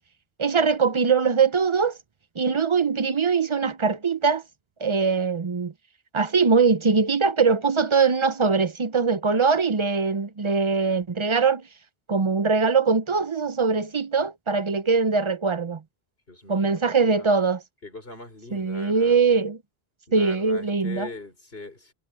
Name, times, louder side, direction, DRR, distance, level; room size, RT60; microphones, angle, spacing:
voice 1, 0.4-2.0 2.4-4.4 4.8-5.7 6.1-11.7 12.1-15.8 16.5-17.6 18.5-19.6 20.1-21.1, right 5 dB, 30° right, 0.7 m, -22 dB
voice 2, 16.3-17.3 17.8-19.2 20.1-21.9, left 2 dB, 65° left, 5.6 m, -41 dB
omnidirectional pair, 1.1 m